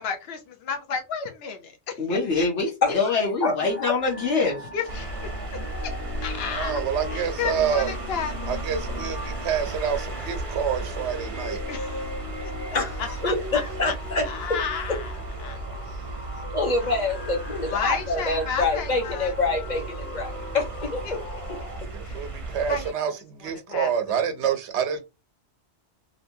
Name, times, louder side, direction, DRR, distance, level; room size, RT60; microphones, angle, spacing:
voice 1, 0.0-2.2 4.7-5.1 6.2-6.8 7.1-8.6 11.7-11.9 12.4-12.8 13.9-14.0 14.2-15.1 15.4-15.6 17.6-19.3 22.0-22.4 22.7-22.8 23.7-23.9, left 6 dB, 65° left, 1.0 m, -32 dB
voice 2, 2.0-4.7, left 3 dB, 85° left, 1.4 m, -24 dB
voice 3, 2.8-3.1 3.4-3.9 12.7-14.3 14.9-15.0 16.5-21.2 21.5-21.6, left 3 dB, 45° left, 1.1 m, -26 dB
sound 1, 3.6-21.8, left 2 dB, 15° left, 0.6 m, -39 dB
sound 2, 4.9-22.9, right 2 dB, 35° right, 0.6 m, -35 dB
voice 4, 6.4-7.9 8.4-11.6 15.9-16.0 21.9-25.0, right 8 dB, 90° right, 1.0 m, -27 dB
3.2 x 2.9 x 2.6 m
omnidirectional pair, 1.1 m